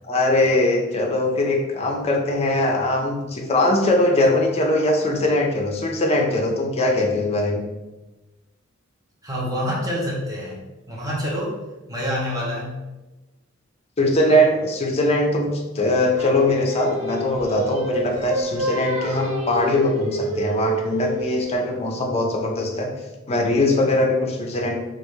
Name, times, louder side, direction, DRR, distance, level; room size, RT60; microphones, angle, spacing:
voice 1, 0.1-7.6 14.0-22.9 23.3-24.8, left 1 dB, 30° left, 1 dB, 0.5 m, -21 dB
voice 2, 9.2-10.6 10.9-11.6 11.9-12.8, equal, 15° right, -5 dB, 0.9 m, -27 dB
Singing, 16.1-21.4, right 1 dB, 85° right, 0.9 m, -28 dB
3.4 x 2.5 x 3.1 m, 1.1 s
head